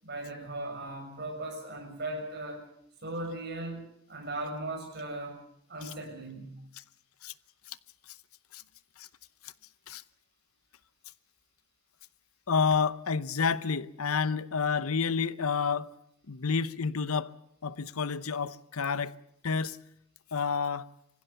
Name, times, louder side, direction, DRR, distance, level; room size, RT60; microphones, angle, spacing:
voice 1, 0.0-2.6 3.0-5.4 5.7-6.5, right 2 dB, 50° right, 6.8 m, -38 dB
voice 2, 12.5-15.9 16.3-17.3 17.6-19.2 19.4-19.8 20.3-20.9, left 5 dB, 80° left, 0.8 m, -29 dB
25.0 x 16.0 x 8.2 m
head